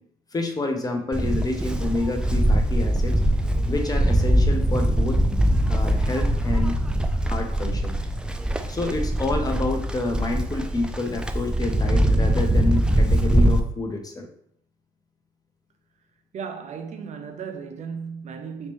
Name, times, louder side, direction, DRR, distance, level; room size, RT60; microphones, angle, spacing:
voice 1, 0.3-3.1 3.7-5.2 5.7-6.8 7.3-8.0 8.7-14.3, left 2 dB, 20° left, 0.8 m, -28 dB
Livestock farm animals working animals, 1.1-13.6, right 1 dB, 5° right, 0.4 m, -22 dB
voice 2, 16.3-18.7, right 6 dB, 45° right, 0.7 m, -35 dB
3.2 x 2.9 x 3.1 m
hypercardioid pair, 65°, 17 cm